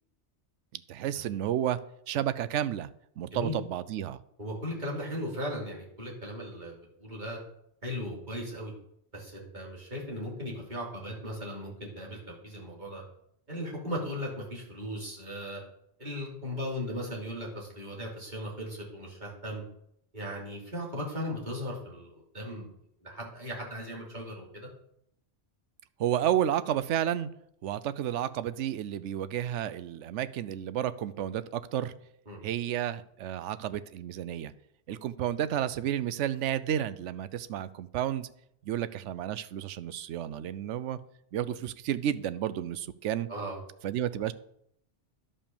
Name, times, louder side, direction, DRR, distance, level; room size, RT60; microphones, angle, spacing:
voice 1, 0.7-1.8 2.1-2.9 3.2-4.2 26.0-27.3 27.6-31.9 32.4-34.5 34.9-38.3 38.7-41.0 41.3-43.3 43.8-44.3, right 11 dB, 80° right, 15 dB, 0.9 m, -31 dB
voice 2, 4.4-7.4 7.8-8.7 9.1-13.0 13.5-15.6 16.0-19.6 20.1-22.7 23.0-24.7 32.3-32.4 34.9-35.0 43.3-43.6, equal, 40° right, -4 dB, 3.2 m, -37 dB
11.0 x 5.4 x 6.9 m, 0.73 s
omnidirectional pair, 1.2 m